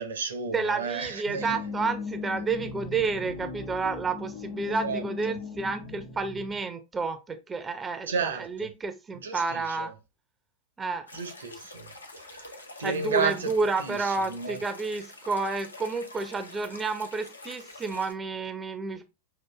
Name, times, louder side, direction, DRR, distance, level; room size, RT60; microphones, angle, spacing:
voice 1, 0.0-1.6 4.6-5.4 8.1-8.7 9.2-9.9 11.1-11.9 12.3-12.4 12.8-13.5 13.8-14.6, right 5 dB, 65° right, 0.7 m, -32 dB
voice 2, 0.5-9.9 10.8-11.1 12.8-19.0, right 4 dB, 15° right, 0.4 m, -30 dB
sound 1, 1.4-6.6, left 4 dB, 45° left, 1.0 m, -38 dB
sound 2, 11.1-18.1, left 2 dB, 80° left, 0.6 m, -46 dB
5.6 x 2.6 x 2.2 m
figure-of-eight pair, 90°, 0 cm